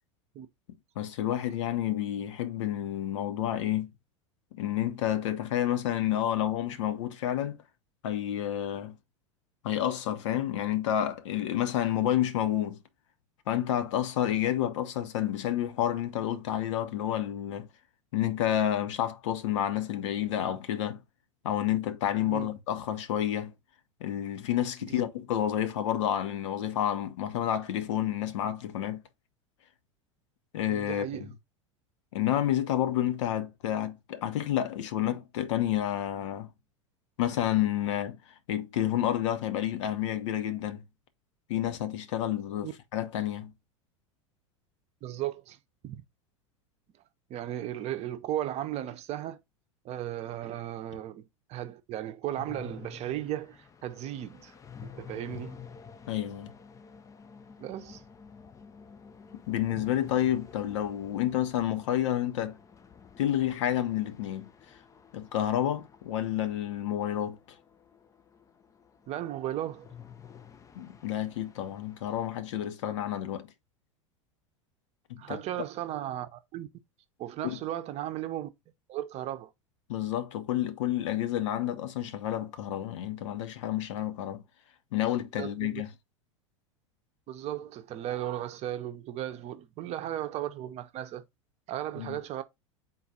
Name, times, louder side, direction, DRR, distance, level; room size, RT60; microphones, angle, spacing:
voice 1, 1.0-3.9 4.5-7.6 8.0-9.0 9.6-12.8 13.5-17.7 18.1-21.0 21.4-23.5 24.0-29.0 30.5-31.3 32.1-36.5 37.2-40.8 41.5-43.5 56.1-56.5 59.5-62.6 63.2-64.5 65.1-67.4 70.7-73.5 75.1-75.4 77.4-77.6 79.9-84.4 84.9-85.9 92.0-92.2, left 11 dB, 70° left, 0.8 m, -30 dB
voice 2, 30.7-31.3 42.6-42.7 45.0-45.6 45.8-46.0 47.3-49.4 49.8-51.2 51.5-54.5 54.8-55.6 57.6-58.0 69.1-69.9 75.2-76.7 77.2-78.5 78.9-79.5 85.4-85.8 87.3-91.2 91.7-92.4, right 12 dB, 40° right, 0.7 m, -36 dB
sound 1, 52.3-72.3, left 7 dB, 20° left, 0.5 m, -51 dB
3.9 x 2.3 x 4.1 m
hypercardioid pair, 90°, 16 cm